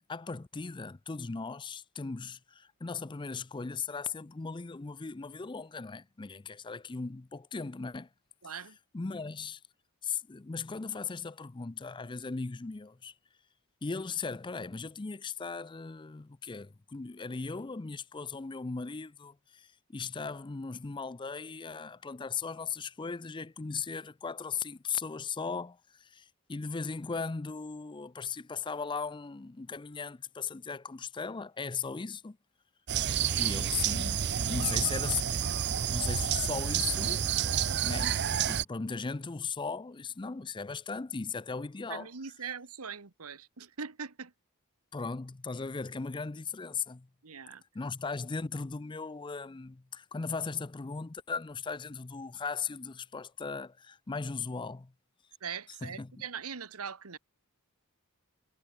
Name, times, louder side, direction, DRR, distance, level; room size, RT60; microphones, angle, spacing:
voice 1, 0.0-8.1 8.9-9.6 10.0-13.1 13.8-32.4 33.4-35.4 35.7-37.5 37.8-42.1 44.9-47.1 47.7-54.9 55.8-56.1, left 5 dB, 20° left, 0.5 m, -37 dB
voice 2, 8.4-8.8 41.9-44.3 47.2-47.6 55.4-57.2, right 6 dB, 80° right, 1.4 m, -41 dB
sound 1, 32.9-38.6, right 8 dB, 50° right, 0.8 m, -29 dB
head